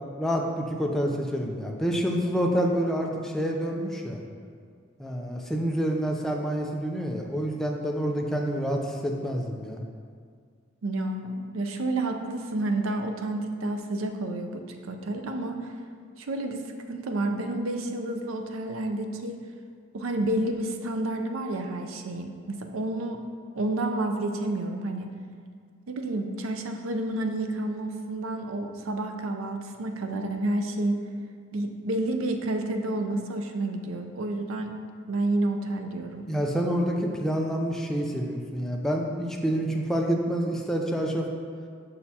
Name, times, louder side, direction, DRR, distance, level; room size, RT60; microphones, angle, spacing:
voice 1, 0.2-4.2 5.0-9.8 36.3-41.3, equal, ahead, 0 dB, 0.4 m, -28 dB
voice 2, 10.8-15.7 16.2-16.6 16.9-19.4 19.9-23.2 23.5-25.1 25.9-31.0 31.5-34.7 35.1-36.3, right 2 dB, 90° right, 5 dB, 0.5 m, -30 dB
6.4 x 5.6 x 2.8 m, 2.1 s
head